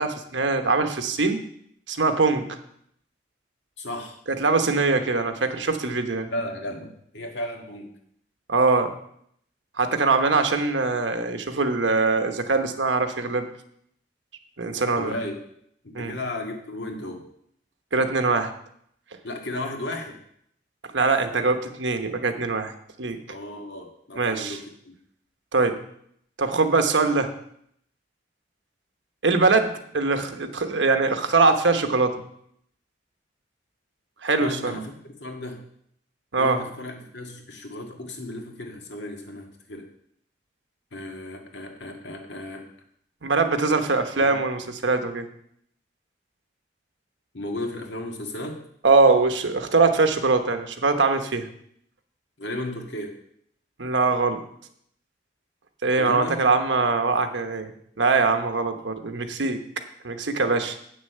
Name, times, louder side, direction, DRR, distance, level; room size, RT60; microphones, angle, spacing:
voice 1, 0.0-1.4 1.9-2.5 4.3-6.3 8.5-8.9 9.8-13.5 14.6-15.1 15.9-16.1 17.9-18.5 20.9-22.7 23.0-23.2 24.2-24.6 25.5-25.8 26.4-27.3 29.2-32.1 34.2-34.7 36.3-36.6 43.2-45.3 48.8-51.5 53.8-54.4 55.8-57.7 58.0-59.6 60.0-60.8, right 3 dB, 90° right, 7 dB, 1.1 m, -22 dB
voice 2, 3.8-4.2 6.3-7.9 15.0-15.4 15.8-17.3 19.2-20.2 23.3-24.9 34.4-35.6 36.3-39.9 40.9-42.7 44.2-44.4 47.3-48.6 52.4-53.2 56.0-56.4, left 1 dB, 75° left, 2 dB, 1.9 m, -34 dB
8.4 x 6.8 x 6.7 m, 0.69 s
head